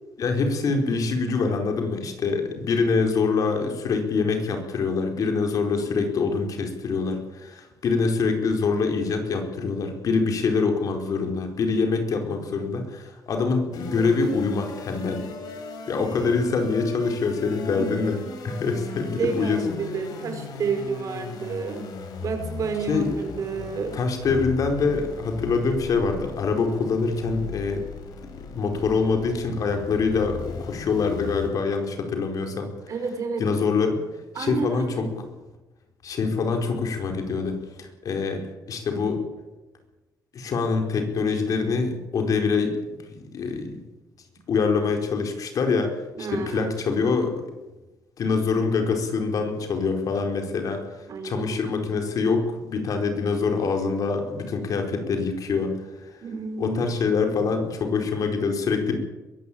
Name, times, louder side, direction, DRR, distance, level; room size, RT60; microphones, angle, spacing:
voice 1, 0.2-15.2 15.9-18.2 18.4-19.6 22.9-23.1 23.9-27.9 28.2-32.7 33.4-34.0 34.4-35.3 36.0-39.2 40.3-42.8 43.1-43.8 44.5-47.3 48.2-50.8 51.2-55.8 56.6-59.0, left 4 dB, 60° left, 4 dB, 4.7 m, -25 dB
sound 1, 13.7-31.5, left 4 dB, 75° left, 5.1 m, -38 dB
voice 2, 17.5-18.1 19.2-21.9 22.2-24.0 32.9-33.5 34.3-35.1 46.1-46.7 51.1-51.6 56.2-56.8, right 5 dB, 55° right, 6 dB, 5.1 m, -30 dB
22.0 x 15.0 x 8.8 m, 1.1 s
cardioid pair, 115°, 7 cm